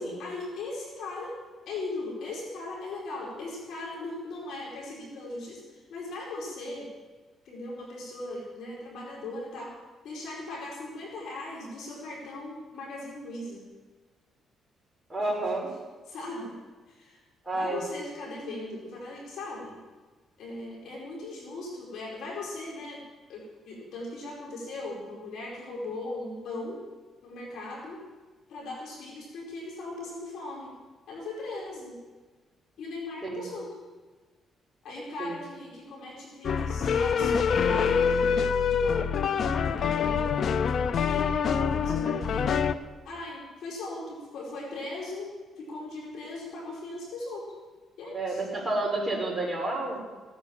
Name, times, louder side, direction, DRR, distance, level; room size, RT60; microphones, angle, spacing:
voice 1, 0.0-1.3 1.7-6.9 7.4-9.7 10.0-13.6 16.1-16.5 16.9-17.2 17.5-19.8 20.4-23.0 23.3-26.8 27.2-28.0 28.5-30.7 31.1-31.9 32.8-33.7 34.8-39.1 39.6-42.5 43.0-45.3 45.6-47.5 48.0-48.4, left 2 dB, 75° left, -3 dB, 4.7 m, -38 dB
voice 2, 15.1-15.7 17.5-17.8 33.2-33.5 35.2-35.4 48.1-50.0, right 2 dB, 10° right, -2 dB, 5.4 m, -30 dB
sound 1, 36.4-42.7, left 6 dB, 60° left, 0.7 m, -25 dB
17.0 x 9.7 x 7.2 m, 1.3 s
cardioid pair, 90°, 0 cm